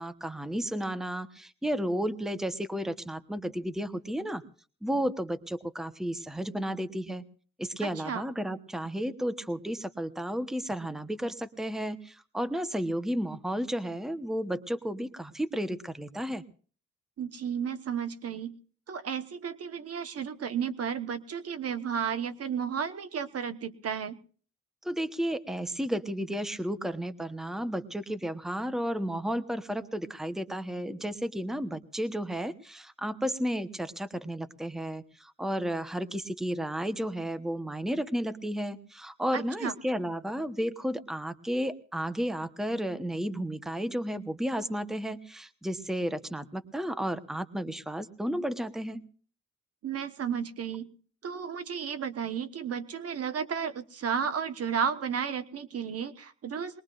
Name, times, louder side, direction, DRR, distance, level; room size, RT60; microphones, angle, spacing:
voice 1, 0.0-4.4 4.8-7.2 7.6-16.4 24.8-49.0, equal, ahead, 12 dB, 1.1 m, -33 dB
voice 2, 7.8-8.2 17.2-18.6 18.9-24.2 39.3-39.7 49.8-50.9 51.2-56.8, right 7 dB, 50° right, 11 dB, 1.3 m, -33 dB
21.5 x 21.5 x 2.5 m, 0.42 s
cardioid pair, 90°, 30 cm